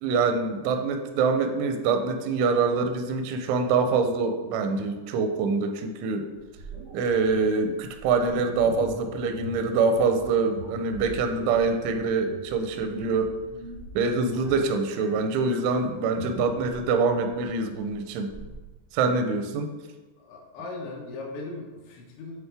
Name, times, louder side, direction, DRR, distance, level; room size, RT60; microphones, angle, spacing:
voice 1, 0.0-6.3 6.9-13.3 14.0-18.3 18.9-19.7, right 4 dB, 85° right, 7 dB, 3.0 m, -25 dB
sound 1, 6.4-18.6, equal, 60° right, 0.9 m, -44 dB
voice 2, 14.2-14.5 20.2-22.4, left 2 dB, 75° left, -1 dB, 3.3 m, -39 dB
9.0 x 4.1 x 3.4 m, 1.2 s
omnidirectional pair, 5.3 m